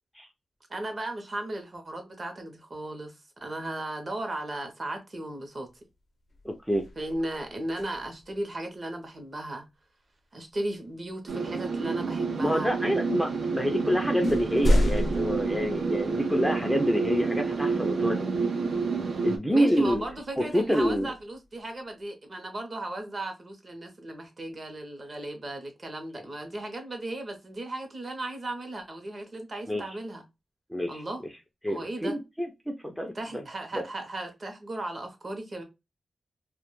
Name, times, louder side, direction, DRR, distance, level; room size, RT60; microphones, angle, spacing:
voice 1, 0.7-3.1 3.4-5.7 7.0-9.7 10.3-12.7 19.5-30.2 30.9-31.2 31.7-32.2 33.1-35.6, right 1 dB, 40° right, 0.6 m, -36 dB
sound 1, 5.6-5.9 6.3-8.4 10.5-10.7 11.5-12.3 13.1-13.2 13.6-16.5 17.0-17.1 19.7-21.9, left 1 dB, 60° left, 0.5 m, -31 dB
voice 2, 6.4-6.8 12.4-18.3 19.2-20.0 20.4-21.1 29.7-30.0 30.7-31.0 31.6-33.4 33.7-33.8, equal, ahead, 0.3 m, -27 dB
sound 2, 11.3-19.4, right 4 dB, 85° right, 0.4 m, -29 dB
2.1 x 2.1 x 2.9 m
wide cardioid pair, 145°, 0 cm